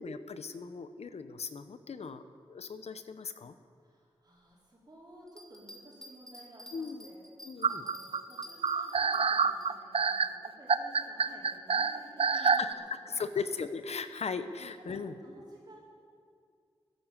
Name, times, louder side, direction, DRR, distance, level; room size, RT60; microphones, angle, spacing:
voice 1, 0.0-2.2 2.5-3.6 6.7-7.1 7.4-7.8 12.3-15.1, left 5 dB, 75° left, 11 dB, 0.8 m, -38 dB
voice 2, 3.8-7.3 7.7-13.2 14.7-15.0 15.2-15.8, right 1 dB, 40° right, -7 dB, 4.3 m, -54 dB
Bell, 5.3-9.7 10.2-10.3, equal, 5° left, 2.8 m, -51 dB
sound 1, 7.6-12.7, right 5 dB, 60° right, 0.5 m, -27 dB
13.5 x 11.0 x 7.3 m, 2.3 s
cardioid pair, 55°, 11 cm